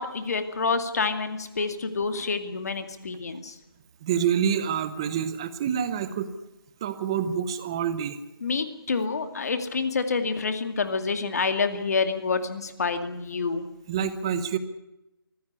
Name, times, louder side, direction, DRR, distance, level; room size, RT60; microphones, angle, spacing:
voice 1, 0.0-3.5 8.4-13.6, left 4 dB, 40° left, 8 dB, 2.3 m, -28 dB
voice 2, 4.0-6.3 6.8-8.2 13.9-14.6, right 8 dB, 10° right, 13 dB, 0.7 m, -27 dB
23.0 x 16.0 x 9.6 m, 0.94 s
hypercardioid pair, 175°, 12 cm